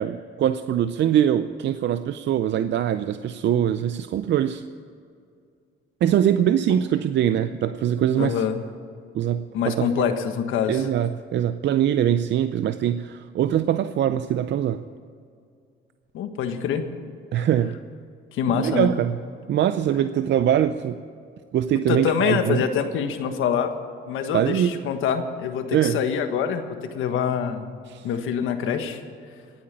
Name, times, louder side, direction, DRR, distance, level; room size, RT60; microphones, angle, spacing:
voice 1, 0.0-4.6 6.0-8.4 9.1-9.9 10.7-14.8 17.3-17.8 18.6-19.2 19.5-21.0 21.5-22.6 24.3-24.9 25.7-26.0 27.9-28.1, right 10 dB, 65° right, 11 dB, 0.6 m, -23 dB
voice 2, 8.2-8.6 9.5-10.8 16.1-16.8 18.3-18.9 21.9-23.7 24.1-26.6 26.9-27.7 28.0-29.0, left 7 dB, 90° left, 7 dB, 1.4 m, -25 dB
17.0 x 8.7 x 8.7 m, 2.3 s
cardioid pair, 90°, 20 cm